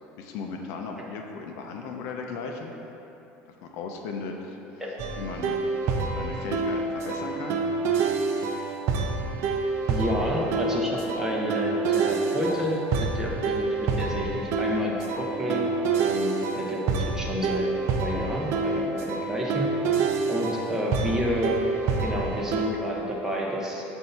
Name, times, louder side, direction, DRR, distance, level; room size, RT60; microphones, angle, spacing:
voice 1, 0.2-2.7 3.6-4.6 5.2-5.6 6.1-7.6, left 4 dB, 65° left, 2 dB, 0.6 m, -36 dB
sound 1, 5.0-22.7, right 4 dB, 55° right, 0.6 m, -27 dB
voice 2, 9.9-15.6 15.9-17.6 18.0-19.8 20.3-21.6 22.0-23.8, equal, 10° right, -3 dB, 0.9 m, -30 dB
7.6 x 2.7 x 5.6 m, 3.0 s
cardioid pair, 135°, 6 cm